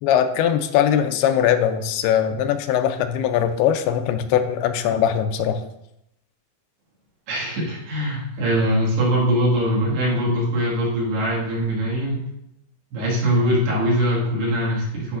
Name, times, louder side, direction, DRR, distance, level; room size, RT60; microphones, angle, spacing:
voice 1, 0.0-5.6, left 9 dB, 85° left, 8 dB, 2.5 m, -21 dB
voice 2, 7.3-12.2 12.9-15.2, equal, 80° right, -5 dB, 3.9 m, -22 dB
12.0 x 5.4 x 2.5 m, 0.81 s
omnidirectional pair, 4.6 m